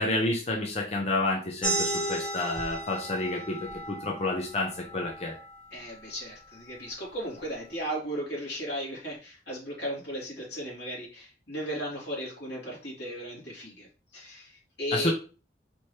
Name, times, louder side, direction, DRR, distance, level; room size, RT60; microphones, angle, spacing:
voice 1, 0.0-5.4 14.9-15.1, left 2 dB, 35° left, 0 dB, 0.6 m, -29 dB
sound 1, 1.6-6.8, right 1 dB, 5° left, 1.2 m, -35 dB
voice 2, 5.7-13.9 14.1-15.1, equal, 85° left, -4 dB, 2.4 m, -36 dB
4.3 x 3.0 x 3.2 m, 0.35 s
head